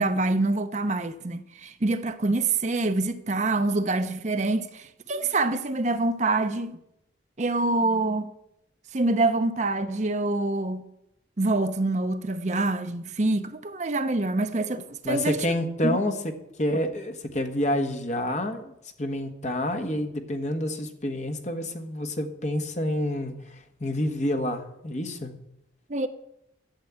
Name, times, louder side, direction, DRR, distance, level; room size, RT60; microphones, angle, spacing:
voice 1, 0.0-6.8 7.4-8.3 8.9-10.9 11.4-15.4 15.8-16.0 25.9-26.1, right 2 dB, 40° right, 0.6 m, -26 dB
voice 2, 15.0-18.7 19.0-25.4, left 1 dB, 40° left, 1.3 m, -28 dB
12.0 x 7.4 x 8.7 m
head